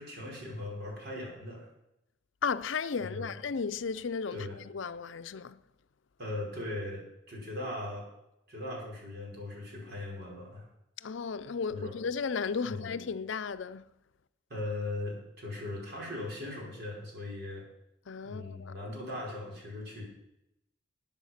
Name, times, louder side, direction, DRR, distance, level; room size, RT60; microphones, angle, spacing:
voice 1, 0.0-1.7 3.0-3.3 4.3-4.6 6.2-8.1 8.5-10.6 11.7-11.9 12.6-12.9 14.5-17.6 18.2-20.0, left 2 dB, 55° right, 5.0 m, -39 dB
voice 2, 2.4-5.6 11.0-13.9 18.1-18.8, left 5 dB, 70° left, 0.5 m, -34 dB
13.5 x 9.2 x 5.8 m
head